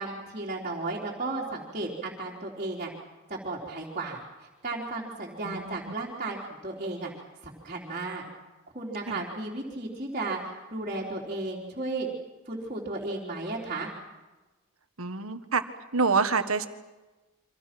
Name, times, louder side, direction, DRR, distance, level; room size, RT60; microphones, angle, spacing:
voice 1, 0.0-2.9 3.3-7.1 7.4-8.2 8.7-12.1 12.5-13.9, right 2 dB, 35° right, -4 dB, 3.8 m, -34 dB
voice 2, 5.4-5.9 9.1-9.2 15.0-15.6 15.9-16.7, right 4 dB, 90° right, 9 dB, 1.7 m, -27 dB
28.5 x 25.5 x 6.1 m, 1.2 s
head